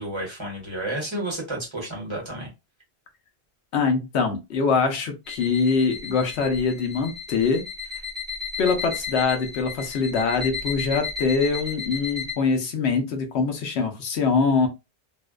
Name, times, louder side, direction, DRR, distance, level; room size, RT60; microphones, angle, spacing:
voice 1, 0.0-2.5, right 1 dB, 30° right, -2 dB, 0.9 m, -31 dB
voice 2, 3.7-7.6 8.6-14.7, left 4 dB, 90° left, 5 dB, 0.9 m, -23 dB
sound 1, 5.3-12.3, left 5 dB, ahead, 0.5 m, -34 dB
2.6 x 2.1 x 2.3 m, 0.24 s
omnidirectional pair, 1.1 m